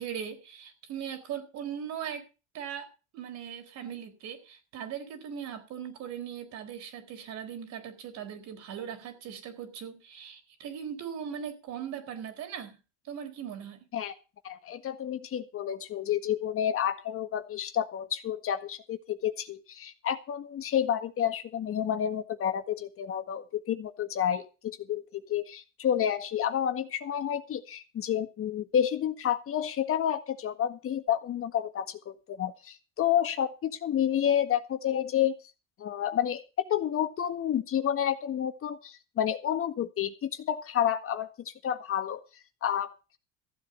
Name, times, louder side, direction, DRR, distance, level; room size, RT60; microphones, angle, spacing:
voice 1, 0.0-2.2 2.5-12.8 13.0-13.8, right 8 dB, 60° right, 4.3 m, -39 dB
voice 2, 14.4-35.4 35.8-36.4 36.7-42.2 42.6-43.2, left 10 dB, 45° left, 1.7 m, -30 dB
15.0 x 7.6 x 6.8 m
supercardioid pair, 100°, 31 cm